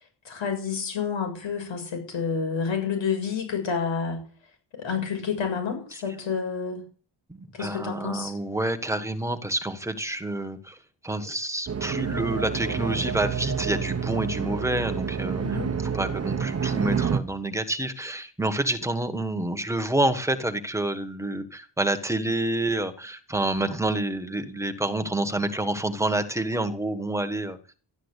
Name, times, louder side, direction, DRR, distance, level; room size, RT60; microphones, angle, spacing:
voice 1, 0.0-4.2 4.7-6.8 7.5-8.3 15.4-15.7, left 6 dB, 85° left, 4 dB, 7.2 m, -29 dB
voice 2, 7.3-10.8 11.0-15.6 15.9-27.8, right 1 dB, 5° right, 7 dB, 1.4 m, -28 dB
sound 1, 11.7-17.2, right 6 dB, 35° right, 1.0 m, -28 dB
13.5 x 12.0 x 8.3 m, 0.41 s
wide cardioid pair, 175°, 44 cm